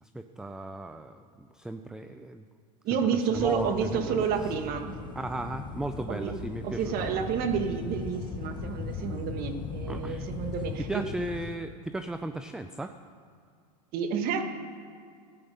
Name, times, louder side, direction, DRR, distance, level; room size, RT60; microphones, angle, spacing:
voice 1, 0.0-2.5 2.9-4.5 5.2-7.3 9.9-10.3 10.9-12.9, right 1 dB, 5° right, 8 dB, 0.4 m, -36 dB
voice 2, 2.8-4.9 6.1-6.4 6.6-11.0 13.9-14.4, right 7 dB, 45° right, 7 dB, 1.4 m, -30 dB
sound 1, 3.3-11.6, left 5 dB, 20° left, 0.9 m, -38 dB
14.0 x 8.7 x 5.2 m, 2.2 s
hypercardioid pair, 105°, 21 cm